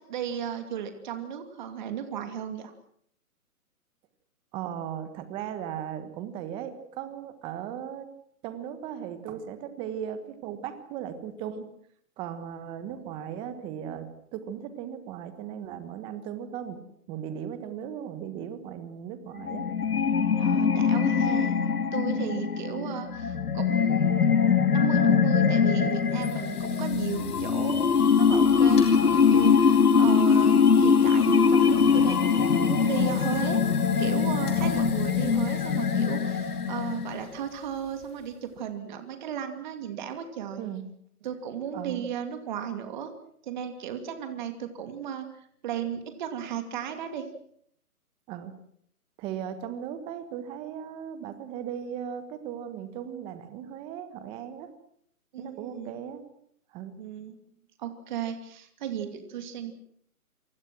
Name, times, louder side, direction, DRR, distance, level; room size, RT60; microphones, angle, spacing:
voice 1, 0.0-2.7 20.4-21.5 21.9-24.1 24.7-33.6 34.0-40.6 41.2-43.1 43.4-47.3 55.3-56.0 57.0-57.4 57.8-59.7, right 8 dB, 30° right, 7 dB, 2.7 m, -35 dB
voice 2, 4.5-8.1 8.4-11.7 12.2-19.7 22.1-22.4 28.9-29.3 34.6-35.0 40.6-40.9 41.7-42.1 48.3-48.6 49.2-54.7 55.4-56.3 56.7-57.0, right 9 dB, 10° right, 11 dB, 1.4 m, -37 dB
sound 1, 19.4-37.4, left 6 dB, 75° left, 2.4 m, -22 dB
sound 2, 25.7-38.5, left 7 dB, 15° left, 3.2 m, -45 dB
28.0 x 24.0 x 6.2 m, 0.67 s
hypercardioid pair, 155°, 46 cm